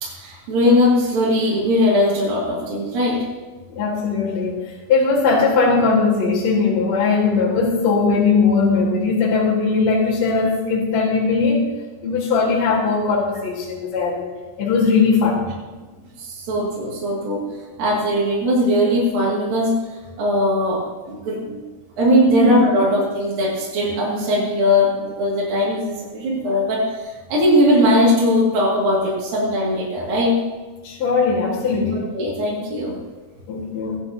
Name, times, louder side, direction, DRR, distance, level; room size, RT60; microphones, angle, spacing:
voice 1, 0.0-3.2 16.2-17.4 17.8-19.7 20.2-20.8 21.1-21.6 22.0-30.4 32.1-33.0, left 1 dB, 65° right, -6 dB, 3.9 m, -19 dB
voice 2, 3.7-4.6 4.9-11.6 12.0-14.3 14.6-15.4 22.2-22.5 30.8-32.1 33.5-34.0, left 4 dB, 55° left, -5 dB, 2.6 m, -19 dB
15.0 x 12.0 x 2.8 m, 1.3 s
omnidirectional pair, 4.4 m